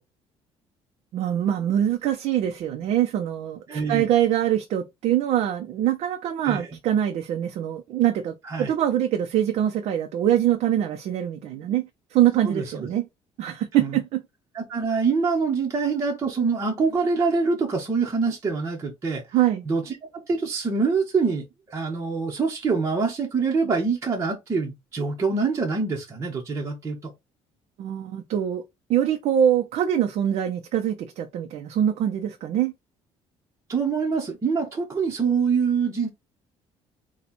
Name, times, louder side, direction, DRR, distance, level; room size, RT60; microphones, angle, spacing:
voice 1, 1.1-13.1 13.4-14.2 19.3-19.6 27.8-28.6 28.9-32.7, right 11 dB, 65° right, 0.7 m, -24 dB
voice 2, 3.7-4.1 6.4-6.7 8.4-8.7 12.4-12.9 13.8-14.0 14.5-19.2 19.7-27.1 33.7-36.1, right 4 dB, 25° right, 1.0 m, -25 dB
4.2 x 2.4 x 4.3 m
cardioid pair, 140°, 12 cm